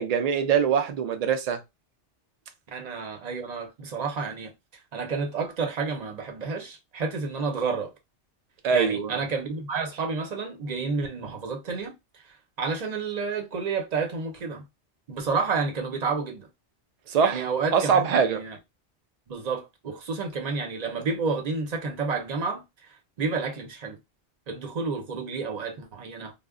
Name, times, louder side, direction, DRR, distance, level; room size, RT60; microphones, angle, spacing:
voice 1, 0.0-1.6 8.6-9.2 17.1-17.4 17.7-18.4, right 6 dB, 75° right, 0.3 m, -23 dB
voice 2, 2.7-7.9 8.7-11.9 12.3-14.6 15.1-16.5 17.2-18.6 19.3-24.0 24.5-26.3, right 4 dB, 40° right, 0.7 m, -30 dB
2.1 x 2.0 x 3.5 m
omnidirectional pair, 1.2 m